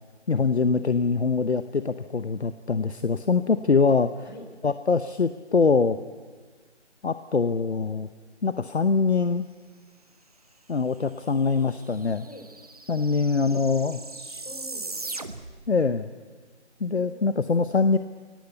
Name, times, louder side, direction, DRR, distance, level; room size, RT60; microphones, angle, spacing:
voice 1, 0.3-4.1 4.6-6.0 7.0-8.1 8.4-9.5 10.7-12.3 12.9-14.0 15.7-16.1 16.8-18.0, left 4 dB, 65° left, 11 dB, 1.0 m, -23 dB
sound 1, 11.2-11.3 11.5-15.7, right 3 dB, 30° right, 1.0 m, -39 dB
voice 2, 12.2-12.5 13.2-15.2 16.9-17.5, left 1 dB, 40° left, 5 dB, 3.9 m, -47 dB
23.5 x 18.0 x 8.2 m, 1.5 s
figure-of-eight pair, 170°, 35 cm